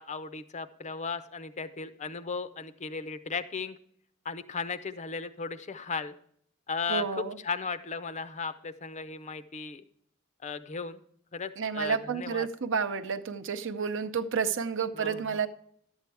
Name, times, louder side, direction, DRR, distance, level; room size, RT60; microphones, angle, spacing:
voice 1, 0.0-3.8 4.2-6.1 6.7-9.8 10.4-11.0 11.3-12.5 14.9-15.4, left 4 dB, 35° left, 12 dB, 0.6 m, -36 dB
voice 2, 6.9-7.4 11.6-15.5, right 6 dB, 60° right, 8 dB, 0.7 m, -30 dB
11.5 x 8.1 x 3.4 m, 0.65 s
head